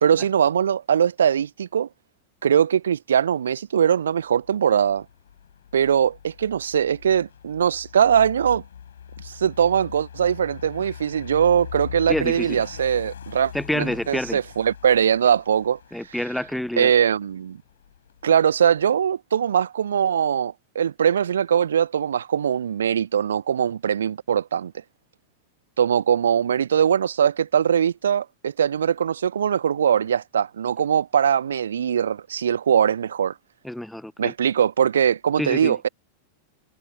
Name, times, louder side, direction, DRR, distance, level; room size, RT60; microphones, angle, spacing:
voice 1, 0.0-1.9 2.4-5.0 5.7-8.6 9.2-15.8 16.8-17.6 18.2-24.7 25.8-33.3 34.2-35.9, right 8 dB, 65° right, 0.8 m, -21 dB
sound 1, 4.2-19.1, left 8 dB, 65° left, 4.7 m, -41 dB
voice 2, 12.1-12.6 13.5-14.4 15.9-16.9 33.6-34.3 35.4-35.8, left 1 dB, ahead, 1.0 m, -28 dB
figure-of-eight pair, 90°, 0 cm